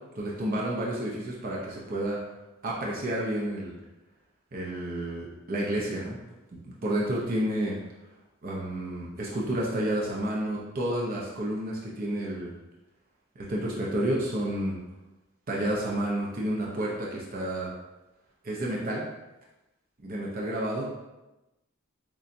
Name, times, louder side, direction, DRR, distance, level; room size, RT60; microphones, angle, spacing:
voice 1, 0.1-2.2 2.6-3.7 4.5-6.2 6.5-7.7 8.4-12.5 13.4-14.8 15.5-17.7 18.4-19.0 20.0-20.9, right 1 dB, 40° right, -4 dB, 0.6 m, -30 dB
6.7 x 2.3 x 2.6 m, 1.0 s
head